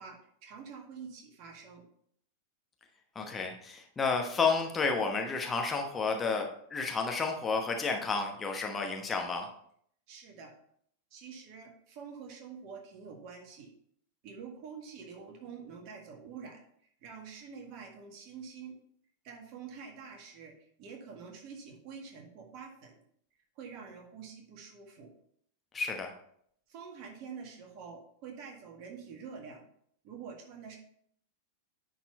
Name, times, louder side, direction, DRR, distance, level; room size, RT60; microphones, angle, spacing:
voice 1, 0.0-1.8 10.1-10.5 11.1-13.7 14.2-16.6 17.0-18.8 19.2-22.9 23.6-25.1 26.7-29.7 30.0-30.8, right 6 dB, 45° right, 2 dB, 1.8 m, -47 dB
voice 2, 3.1-9.5 25.7-26.1, left 4 dB, 15° left, 2 dB, 1.0 m, -31 dB
9.9 x 4.3 x 4.2 m, 0.66 s
figure-of-eight pair, 90°, 0 cm